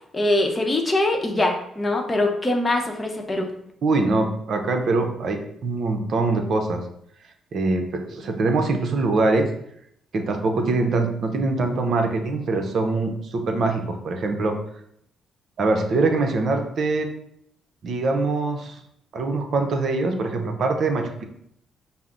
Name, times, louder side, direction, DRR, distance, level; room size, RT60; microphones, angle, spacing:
voice 1, 0.1-3.5, left 2 dB, 20° left, 2 dB, 0.8 m, -23 dB
voice 2, 3.8-6.8 7.5-9.5 10.1-14.6 15.6-17.1 17.8-18.8 19.1-21.2, right 3 dB, 60° right, 4 dB, 0.7 m, -23 dB
5.7 x 2.0 x 3.7 m, 0.71 s
cardioid pair, 90°, 0 cm